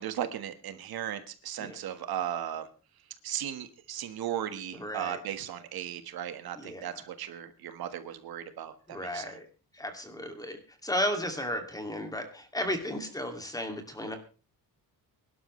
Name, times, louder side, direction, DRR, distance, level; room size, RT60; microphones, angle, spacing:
voice 1, 0.0-2.7 3.2-9.4, right 10 dB, 70° right, 10 dB, 1.5 m, -36 dB
voice 2, 4.7-5.2 6.6-6.9 8.9-9.5 9.7-14.2, left 1 dB, 10° left, 6 dB, 2.4 m, -34 dB
23.0 x 12.0 x 3.2 m, 0.34 s
cardioid pair, 150°, 37 cm